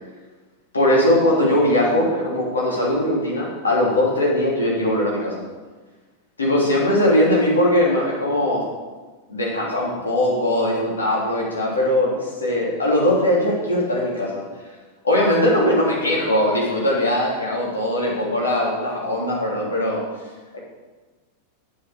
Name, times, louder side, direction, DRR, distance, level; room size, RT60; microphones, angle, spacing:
voice 1, 0.7-5.4 6.4-8.6 9.3-12.1 12.4-14.4 15.0-20.0 20.5-20.6, left 1 dB, 75° left, -4 dB, 3.3 m, -20 dB
8.8 x 7.7 x 6.7 m, 1.3 s
figure-of-eight pair, 90°, 0 cm